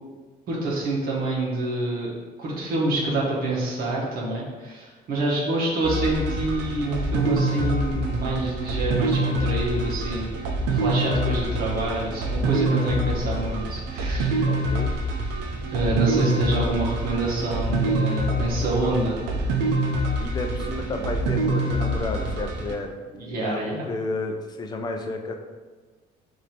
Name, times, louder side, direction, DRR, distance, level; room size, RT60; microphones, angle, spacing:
voice 1, 0.5-2.1 2.4-14.5 15.7-19.6 23.1-23.8, right 2 dB, 60° right, -5 dB, 1.0 m, -27 dB
sound 1, 5.8-22.8, right 1 dB, 85° right, 0.5 m, -26 dB
voice 2, 14.4-14.9 20.2-22.9 23.3-25.3, left 2 dB, 25° left, 3 dB, 0.4 m, -31 dB
4.9 x 2.6 x 2.9 m, 1.4 s
cardioid pair, 110°, 17 cm